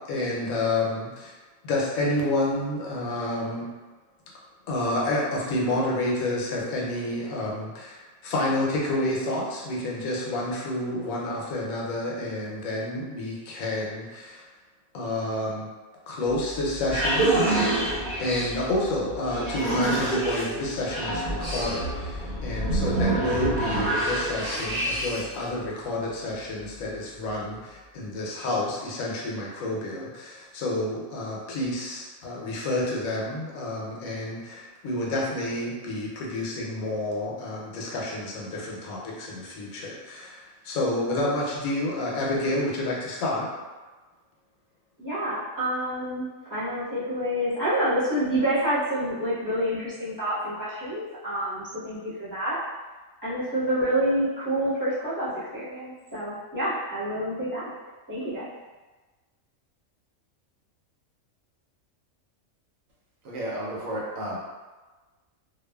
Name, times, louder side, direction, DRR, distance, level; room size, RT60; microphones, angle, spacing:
voice 1, 0.1-1.4 1.6-3.7 4.7-14.5 14.9-15.7 16.1-17.3 18.2-43.5, left 1 dB, 80° left, -3 dB, 1.0 m, -29 dB
sound 1, 16.5-25.4, right 1 dB, 50° right, 0.9 m, -27 dB
voice 2, 45.0-46.2 46.5-52.6 53.2-57.7 58.1-58.5, right 1 dB, 15° right, -12 dB, 0.8 m, -28 dB
voice 3, 63.2-64.4, right 1 dB, 75° right, -6 dB, 1.1 m, -32 dB
2.6 x 2.3 x 2.2 m, 1.2 s
omnidirectional pair, 1.4 m